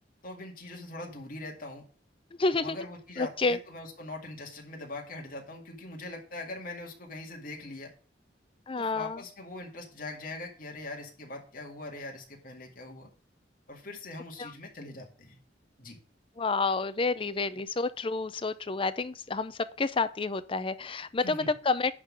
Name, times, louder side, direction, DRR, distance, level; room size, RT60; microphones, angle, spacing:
voice 1, 0.2-1.8 2.6-7.9 8.8-13.1 13.7-15.4 15.8-16.0 21.2-21.5, left 2 dB, 50° left, 2.2 m, -42 dB
voice 2, 2.4-2.8 3.2-3.6 8.7-9.2 14.4-14.5 16.4-21.9, left 3 dB, 30° left, 0.5 m, -29 dB
10.5 x 3.8 x 7.4 m
head